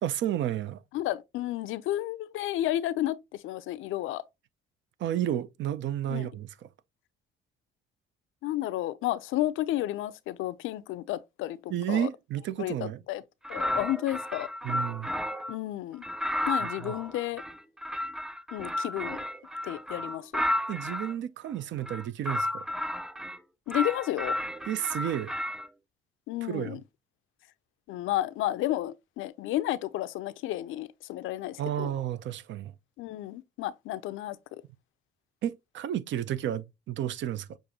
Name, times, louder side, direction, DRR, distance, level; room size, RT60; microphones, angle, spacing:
voice 1, 0.0-0.8 5.0-6.5 11.7-13.0 14.6-15.1 16.8-16.9 20.7-22.7 24.7-25.3 26.4-26.8 31.6-32.7 35.4-37.6, right 11 dB, 70° right, 0.5 m, -31 dB
voice 2, 0.9-4.2 6.1-6.3 8.4-12.1 12.6-13.2 13.5-14.5 15.5-16.0 16.5-17.4 18.5-19.2 19.6-20.4 23.7-24.4 26.3-26.8 27.9-31.9 33.0-34.6, left 14 dB, 85° left, 0.4 m, -32 dB
sound 1, 13.4-15.6 16.0-21.1 21.8-23.4 23.7-25.7, left 1 dB, 5° right, 0.3 m, -33 dB
6.6 x 2.5 x 2.8 m
cardioid pair, 90°, 20 cm